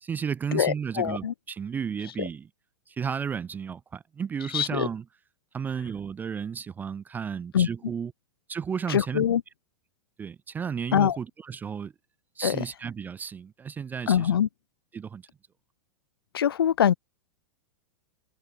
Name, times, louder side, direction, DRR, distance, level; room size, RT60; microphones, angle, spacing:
voice 1, 0.0-2.5 2.9-5.0 5.5-8.1 8.5-9.2 10.2-11.9 12.4-14.4 14.9-15.2, right 7 dB, 15° right, 0.4 m, -33 dB
voice 2, 0.5-1.3 2.2-2.3 4.5-4.9 7.5-7.7 8.9-9.4 10.9-11.2 12.4-12.6 14.1-14.5 16.3-16.9, left 9 dB, 65° left, 1.0 m, -23 dB
figure-of-eight pair, 95°, 13 cm